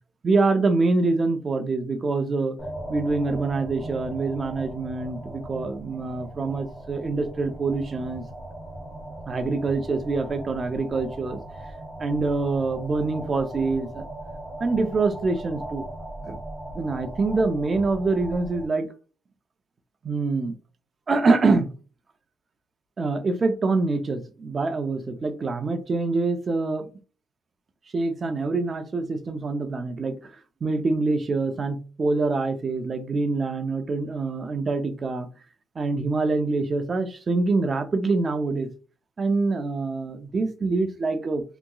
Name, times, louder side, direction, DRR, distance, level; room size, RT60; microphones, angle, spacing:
voice 1, 0.2-2.6 2.9-8.2 9.3-11.4 12.0-14.0 14.6-15.9 16.2-16.4 16.7-18.9 20.0-20.5 21.1-21.7 23.0-26.9 27.9-30.2 30.6-35.3 35.8-38.7 39.2-41.4, right 3 dB, 25° right, 7 dB, 0.5 m, -25 dB
sound 1, 2.6-18.7, right 1 dB, 10° left, 0.9 m, -38 dB
3.5 x 2.9 x 2.2 m, 0.35 s
cardioid pair, 170°, 0 cm